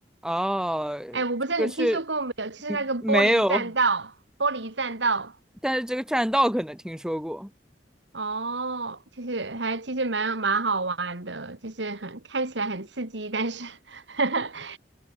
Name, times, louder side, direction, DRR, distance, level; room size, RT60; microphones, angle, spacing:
voice 1, 0.2-1.2 1.6-2.0 2.7-3.6 5.6-7.5, equal, 5° right, 4.5 m, -25 dB
voice 2, 1.1-4.1 4.4-5.3 8.1-14.8, right 3 dB, 85° right, 2.6 m, -28 dB
head